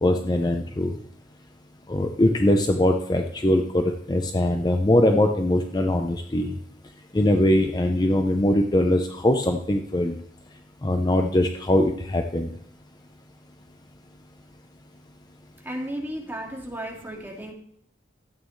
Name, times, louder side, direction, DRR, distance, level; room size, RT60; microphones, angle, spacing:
voice 1, 0.0-0.9 1.9-6.6 7.1-10.2 10.8-12.5, left 1 dB, 25° left, 5 dB, 0.6 m, -22 dB
voice 2, 15.6-17.5, right 1 dB, 10° right, -2 dB, 2.1 m, -34 dB
13.0 x 8.6 x 3.1 m, 0.66 s
head